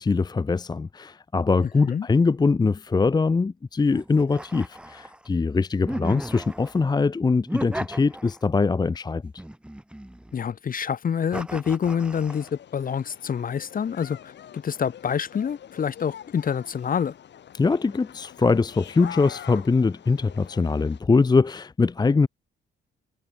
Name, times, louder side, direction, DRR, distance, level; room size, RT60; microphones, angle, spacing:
voice 1, 0.0-9.3 17.5-22.3, left 4 dB, 20° left, 0.7 m, -22 dB
sound 1, 3.9-5.3 5.9-6.8 7.5-8.6 9.4-10.5 11.3-12.5, right 1 dB, 5° right, 2.2 m, -36 dB
voice 2, 10.3-17.1, left 7 dB, 45° left, 1.5 m, -27 dB
sound 2, 12.3-21.0, left 9 dB, 65° left, 5.4 m, -45 dB
cardioid pair, 90°, 20 cm